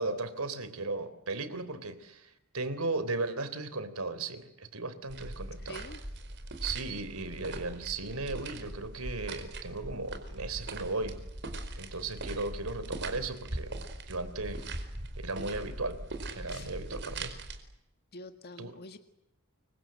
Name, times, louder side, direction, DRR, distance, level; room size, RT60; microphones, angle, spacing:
voice 1, 0.0-5.8 6.6-11.2 11.8-13.7 14.1-14.6 15.2-16.0 16.3-17.3 18.6-18.8, right 3 dB, 85° right, 14 dB, 3.7 m, -36 dB
sound 1, 5.1-17.6, right 2 dB, 55° right, 4.8 m, -41 dB
voice 2, 5.7-6.0 16.5-16.7 18.1-19.0, left 2 dB, 50° left, 7 dB, 1.7 m, -46 dB
29.0 x 24.0 x 7.8 m, 0.84 s
head